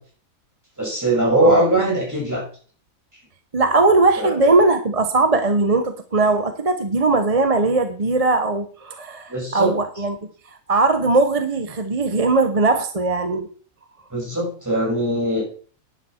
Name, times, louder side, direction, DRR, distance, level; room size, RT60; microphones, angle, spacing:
voice 1, 0.8-2.4 4.2-4.4 9.3-9.7 14.1-15.5, right 1 dB, 10° right, -3 dB, 6.6 m, -20 dB
voice 2, 3.5-10.2 10.7-13.5, right 3 dB, 30° right, 7 dB, 0.9 m, -19 dB
11.0 x 7.2 x 6.4 m, 0.42 s
omnidirectional pair, 1.5 m